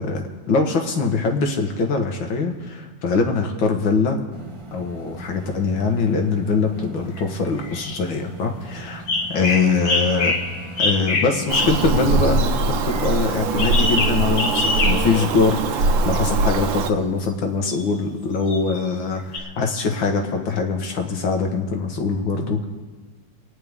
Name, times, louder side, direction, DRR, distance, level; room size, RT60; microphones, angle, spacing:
voice 1, 0.0-4.2 4.7-9.0 9.3-10.3 10.8-22.7, left 4 dB, 90° left, 3 dB, 2.1 m, -23 dB
sound 1, 4.3-12.5, right 2 dB, 25° right, 0.7 m, -40 dB
sound 2, 7.2-7.3 7.6-7.8 9.1-11.9 12.9-15.2 17.7-17.8 18.4-18.8 19.3-19.4, left 3 dB, 60° left, 1.9 m, -24 dB
Bird vocalization bird call bird song, 11.5-16.9, right 3 dB, 80° right, 1.5 m, -22 dB
28.0 x 9.6 x 3.6 m, 1.4 s
omnidirectional pair, 2.0 m